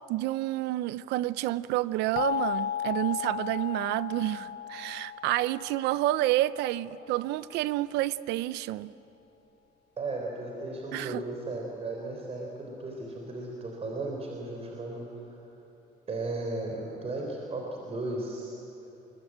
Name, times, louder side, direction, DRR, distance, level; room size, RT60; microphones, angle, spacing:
voice 1, 0.1-8.9 10.9-11.2, right 15 dB, 90° right, 0.7 m, -29 dB
sound 1, 2.2-6.9, left 10 dB, 55° left, 0.6 m, -35 dB
voice 2, 10.0-15.4 16.1-18.6, right 2 dB, 35° right, 4.0 m, -35 dB
27.5 x 22.0 x 8.9 m
cardioid pair, 110°, 17 cm